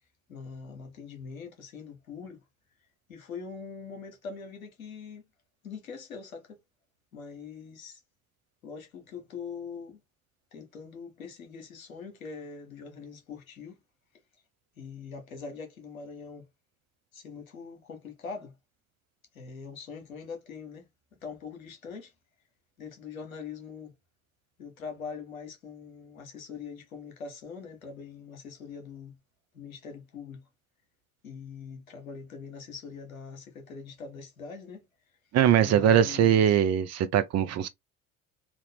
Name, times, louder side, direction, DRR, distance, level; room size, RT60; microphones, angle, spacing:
voice 1, 0.3-2.4 3.1-5.3 5.6-6.6 7.1-8.0 8.6-10.0 10.5-13.8 14.8-16.5 17.1-18.5 19.3-20.9 21.2-22.1 22.8-23.9 24.6-29.2 29.5-30.4 31.2-34.9 35.6-36.5, left 5 dB, 85° left, 1.2 m, -42 dB
voice 2, 35.3-37.7, right 9 dB, 40° right, 0.7 m, -22 dB
3.1 x 2.4 x 3.4 m
hypercardioid pair, 65°, 41 cm